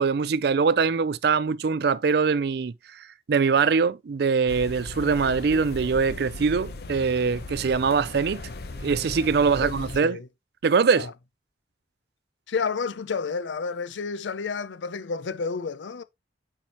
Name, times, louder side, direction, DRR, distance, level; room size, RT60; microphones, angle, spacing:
voice 1, 0.0-8.4 8.8-10.2 10.6-11.1, right 5 dB, 60° right, 0.4 m, -23 dB
sound 1, 4.5-10.0, left 2 dB, 60° left, 0.8 m, -37 dB
voice 2, 9.4-10.3 11.0-11.1 12.5-16.0, left 5 dB, 85° left, 0.5 m, -31 dB
8.4 x 4.8 x 2.9 m
head